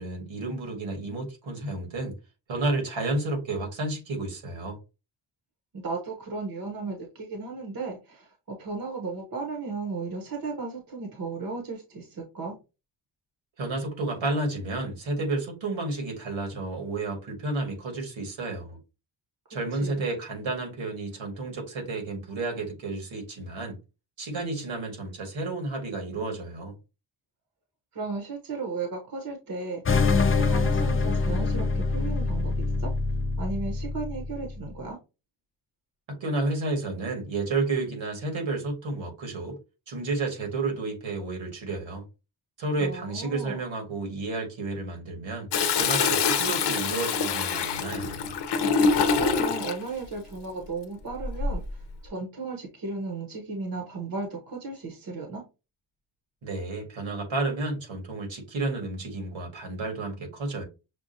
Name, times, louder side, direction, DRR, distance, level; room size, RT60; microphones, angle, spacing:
voice 1, 0.0-2.2 2.5-4.8 13.6-18.8 19.5-23.8 24.2-26.7 36.1-39.6 39.9-42.0 42.6-45.5 45.8-48.3 56.4-60.6, right 2 dB, 75° right, 1.8 m, -31 dB
voice 2, 5.7-12.6 19.7-20.0 27.9-29.8 30.2-32.9 33.4-35.0 42.8-43.6 49.1-55.4, right 3 dB, 45° right, 1.1 m, -35 dB
sound 1, 29.9-34.7, left 4 dB, 30° left, 0.5 m, -25 dB
Toilet flush, 45.5-49.8 51.2-51.7, left 5 dB, 60° left, 0.7 m, -25 dB
6.2 x 2.3 x 2.7 m
wide cardioid pair, 120°, 47 cm